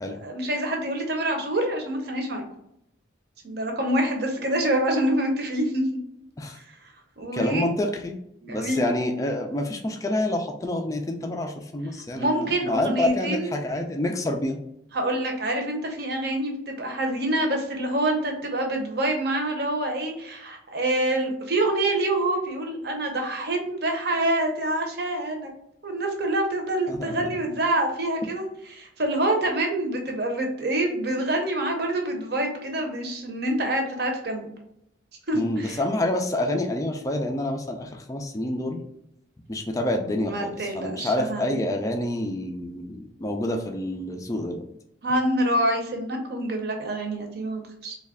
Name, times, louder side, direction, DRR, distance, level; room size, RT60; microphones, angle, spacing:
voice 1, 0.1-2.4 3.4-5.8 7.2-7.7 8.4-8.8 12.1-13.5 14.9-25.5 25.8-28.4 28.7-34.5 35.3-35.8 40.1-41.6 45.0-48.0, right 1 dB, 55° right, 3 dB, 0.7 m, -26 dB
voice 2, 7.3-8.2 8.5-14.6 26.9-27.3 35.3-38.8 39.5-44.6, left 1 dB, 15° left, 3 dB, 0.3 m, -27 dB
3.2 x 2.3 x 3.5 m, 0.77 s
head